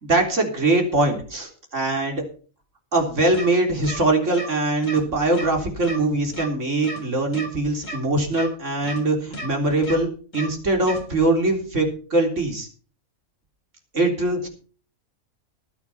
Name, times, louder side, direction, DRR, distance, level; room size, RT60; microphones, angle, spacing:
voice 1, 0.0-2.2 2.9-12.7 13.9-14.5, right 2 dB, 55° right, 2 dB, 4.0 m, -22 dB
sound 1, 3.3-3.5 3.8-4.0 4.3-4.5 4.8-5.0 5.3-5.5 5.8-6.0 6.3-6.5 6.8-7.0 7.3-7.5 7.8-8.0 8.3-8.5 8.8-9.0 9.3-9.5 9.8-10.0 10.3-10.5 10.8-11.0, equal, 60° left, 3.8 m, -33 dB
19.5 x 9.4 x 4.2 m, 0.40 s
omnidirectional pair, 1.5 m